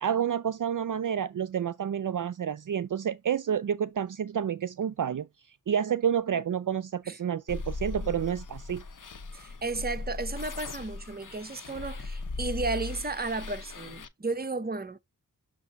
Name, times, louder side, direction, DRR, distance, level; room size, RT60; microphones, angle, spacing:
voice 1, 0.0-5.3 5.7-8.8, right 8 dB, 60° right, 0.5 m, -29 dB
sound 1, 7.5-14.1, left 3 dB, 60° left, 0.8 m, -38 dB
voice 2, 9.3-15.0, right 3 dB, 25° right, 0.7 m, -33 dB
6.9 x 2.6 x 5.2 m
wide cardioid pair, 75°, 36 cm